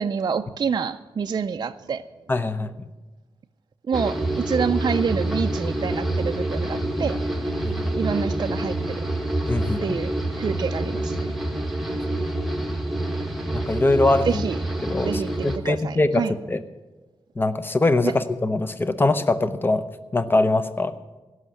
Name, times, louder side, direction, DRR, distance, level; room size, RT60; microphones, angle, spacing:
voice 1, 0.0-2.0 3.9-7.2 8.0-8.8 9.8-10.1 10.4-11.3 14.3-14.6 15.0-16.3 18.0-18.1, right 6 dB, 45° right, 8 dB, 0.4 m, -27 dB
voice 2, 2.3-2.7 7.6-7.8 9.5-10.0 13.5-14.4 14.8-16.6 17.4-19.8 20.1-20.9, left 2 dB, 20° left, 11 dB, 0.8 m, -22 dB
sound 1, 3.9-15.6, right 1 dB, ahead, 1.6 m, -27 dB
17.0 x 6.4 x 9.3 m, 1.2 s
wide cardioid pair, 110°, 10 cm